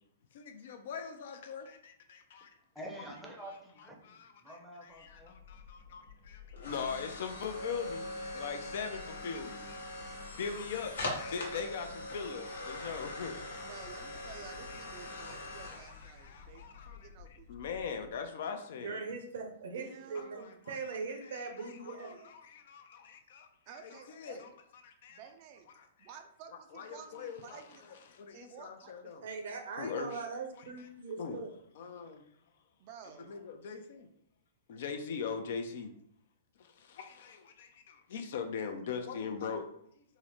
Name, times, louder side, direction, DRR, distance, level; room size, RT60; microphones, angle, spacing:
voice 1, 0.3-2.5 4.0-9.8 10.4-13.3 13.6-13.7 14.5-17.0 17.5-19.0 20.1-20.8 21.2-23.5 23.8-24.5 24.8-25.2 25.8-25.9 26.7-27.6 28.1-29.3 29.8-30.2 30.8-30.9 31.2-31.4 31.8-32.2 33.3-34.1 34.7-35.9 36.6-39.8, left 6 dB, 65° left, 6 dB, 0.5 m, -41 dB
voice 2, 2.7-5.3, right 1 dB, ahead, -2 dB, 0.6 m, -47 dB
sound 1, 5.1-18.1, left 2 dB, 80° left, 0.9 m, -43 dB
voice 3, 13.6-17.8 19.7-20.6 23.7-24.6 25.1-25.7 26.0-27.8 28.3-29.2 32.8-33.4, right 8 dB, 45° right, 6 dB, 0.4 m, -52 dB
voice 4, 18.7-22.3 29.2-31.5, right 4 dB, 75° right, 3 dB, 0.7 m, -41 dB
3.6 x 2.1 x 3.0 m, 0.67 s
hypercardioid pair, 135°, 0 cm